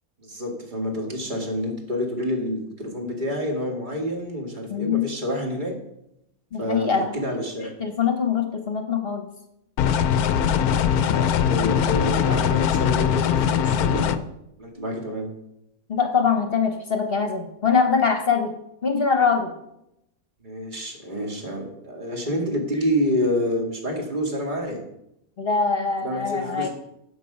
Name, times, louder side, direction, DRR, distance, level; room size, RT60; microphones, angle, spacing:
voice 1, 0.2-5.7 6.6-7.7 11.5-14.2 14.6-15.3 20.4-24.8 26.0-26.7, equal, 35° right, 1 dB, 2.1 m, -28 dB
voice 2, 4.7-5.1 6.5-9.3 11.0-11.3 11.7-11.8 14.8-14.9 15.9-19.5 25.4-26.7, left 5 dB, 45° left, 5 dB, 1.2 m, -23 dB
sound 1, 9.8-14.2, left 8 dB, 85° left, 1.1 m, -21 dB
11.0 x 7.5 x 5.3 m, 0.81 s
omnidirectional pair, 1.5 m